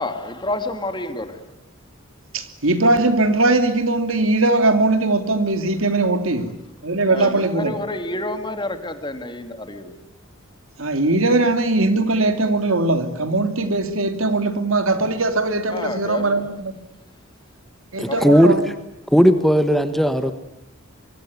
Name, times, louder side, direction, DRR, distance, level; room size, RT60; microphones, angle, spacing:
voice 1, 0.0-1.4 7.1-10.0 15.7-16.4 18.1-18.2, left 2 dB, 20° left, 8 dB, 2.6 m, -29 dB
voice 2, 2.3-6.5 6.8-7.7 10.8-16.7 17.9-18.7, right 2 dB, 75° right, 8 dB, 2.9 m, -20 dB
voice 3, 18.0-18.5 19.1-20.3, equal, ahead, 9 dB, 1.2 m, -16 dB
25.0 x 23.0 x 9.5 m, 0.82 s
head